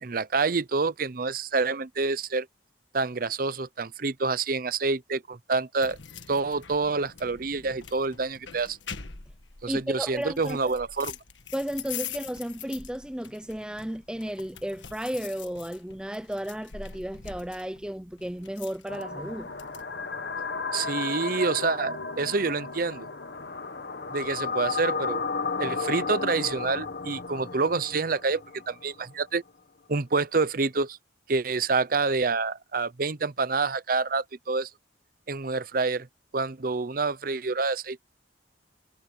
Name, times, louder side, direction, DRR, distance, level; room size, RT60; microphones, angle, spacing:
voice 1, 0.0-2.5 2.9-6.0 6.3-8.8 9.6-11.1 20.7-23.1 24.1-25.2 25.6-29.4 29.9-31.0 31.3-34.7 35.3-36.1 36.3-38.0, right 4 dB, 50° right, 0.7 m, -27 dB
sound 1, 5.8-19.8, left 8 dB, 80° left, 1.5 m, -44 dB
voice 2, 9.7-10.6 11.5-19.5, equal, 5° right, 0.4 m, -33 dB
sound 2, 18.9-29.0, left 4 dB, 60° left, 1.4 m, -33 dB
head